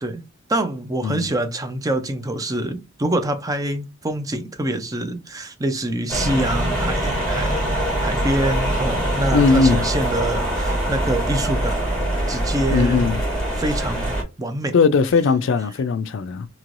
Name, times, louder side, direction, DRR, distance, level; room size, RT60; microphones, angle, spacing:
voice 1, 0.5-7.7 8.0-11.9 12.3-13.1 13.6-14.1 14.4-14.7, right 1 dB, 20° right, 0.4 m, -25 dB
sound 1, 6.1-14.2, right 1 dB, 5° left, 1.5 m, -23 dB
voice 2, 9.3-9.8 12.7-13.2 14.7-16.5, left 4 dB, 65° left, 0.4 m, -18 dB
3.1 x 2.9 x 2.5 m
head